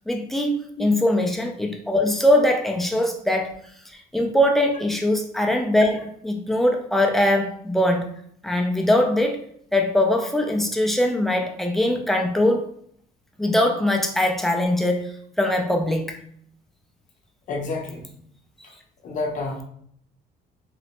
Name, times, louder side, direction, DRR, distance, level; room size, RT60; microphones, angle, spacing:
voice 1, 0.1-3.6 4.1-8.1 8.4-9.4 9.7-12.7 13.4-16.2, left 1 dB, ahead, 1 dB, 0.4 m, -21 dB
voice 2, 17.5-18.1 19.0-19.6, left 3 dB, 50° left, -1 dB, 0.7 m, -29 dB
3.1 x 2.0 x 2.8 m, 0.64 s
cardioid pair, 110°, 17 cm